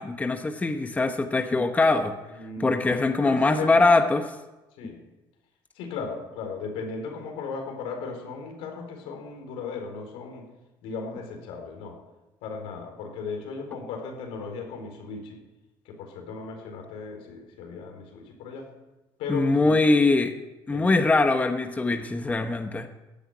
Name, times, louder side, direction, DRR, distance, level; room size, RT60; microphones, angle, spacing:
voice 1, 0.0-2.1 2.6-4.2 19.3-20.3 20.7-22.9, left 3 dB, 15° left, 6 dB, 1.1 m, -22 dB
voice 2, 2.3-3.9 4.8-5.0 5.7-10.5 10.8-12.0 12.4-15.4 15.8-18.7 19.2-20.0 20.7-21.1 22.4-22.5, left 4 dB, 85° left, 3 dB, 4.5 m, -36 dB
15.0 x 9.1 x 9.5 m, 1.1 s
cardioid pair, 120°, 10 cm